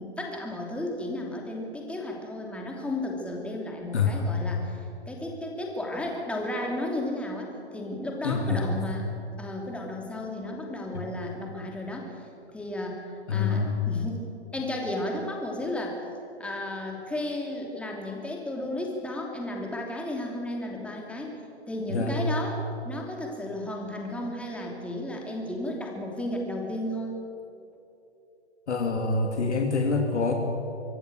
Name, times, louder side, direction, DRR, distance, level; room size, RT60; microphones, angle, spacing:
voice 1, 0.0-9.1 9.4-12.2 12.5-16.0 16.4-21.4 21.7-27.2, left 1 dB, 5° left, 0 dB, 2.9 m, -33 dB
voice 2, 3.9-4.4 8.2-8.7 13.3-13.8 21.9-22.1 28.7-30.3, left 4 dB, 80° left, 3 dB, 3.0 m, -26 dB
25.0 x 15.0 x 8.1 m, 2.7 s
hypercardioid pair, 140°, 34 cm